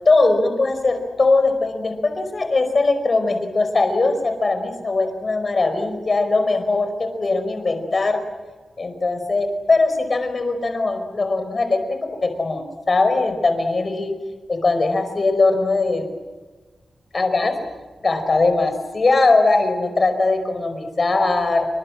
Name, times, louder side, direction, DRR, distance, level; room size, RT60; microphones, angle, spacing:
voice 1, 0.0-8.2 8.8-11.8 12.2-14.1 14.5-16.1 17.1-17.6 18.0-21.7, left 3 dB, 35° left, 7 dB, 5.0 m, -20 dB
28.5 x 25.0 x 7.6 m, 1.3 s
wide cardioid pair, 160°, 0 cm